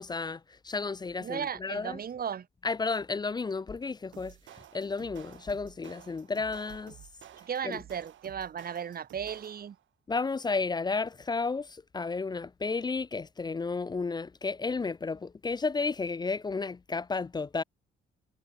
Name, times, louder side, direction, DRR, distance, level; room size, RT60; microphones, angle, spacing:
voice 1, 0.0-2.0 2.6-4.3 4.7-7.0 7.6-7.8 10.1-17.6, left 4 dB, 20° left, 0.4 m, -32 dB
voice 2, 1.2-2.5 7.3-9.8, right 8 dB, 50° right, 1.7 m, -36 dB
sound 1, 4.1-9.8, right 12 dB, 75° right, 3.4 m, -52 dB
cardioid pair, 90°, 20 cm